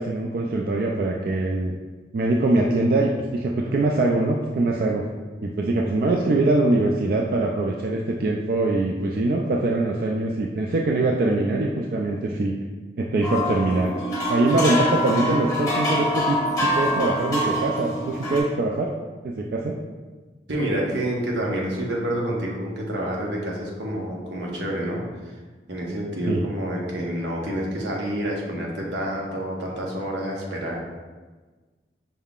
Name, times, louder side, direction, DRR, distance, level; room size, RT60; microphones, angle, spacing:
voice 1, 0.0-1.7 2.1-5.0 5.4-12.6 13.0-13.9 14.3-18.9 19.2-19.8 26.3-26.4, right 2 dB, 55° right, -1 dB, 0.3 m, -23 dB
sound 1, 13.2-18.4, left 1 dB, 20° left, 0.9 m, -25 dB
voice 2, 20.5-25.3 25.7-30.8, right 1 dB, 85° right, -2 dB, 1.0 m, -28 dB
5.4 x 3.5 x 2.4 m, 1.3 s
head